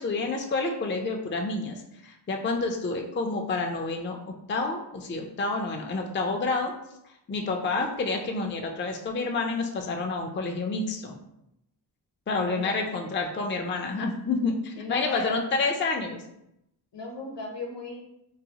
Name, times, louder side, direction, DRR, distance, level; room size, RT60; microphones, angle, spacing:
voice 1, 0.0-6.7 7.3-11.2 12.3-16.2, left 3 dB, 30° left, 3 dB, 0.4 m, -29 dB
voice 2, 12.5-12.8 14.8-15.4 16.9-18.0, left 2 dB, 70° left, 0 dB, 0.8 m, -37 dB
3.9 x 2.0 x 2.8 m, 0.81 s
cardioid pair, 50°, 43 cm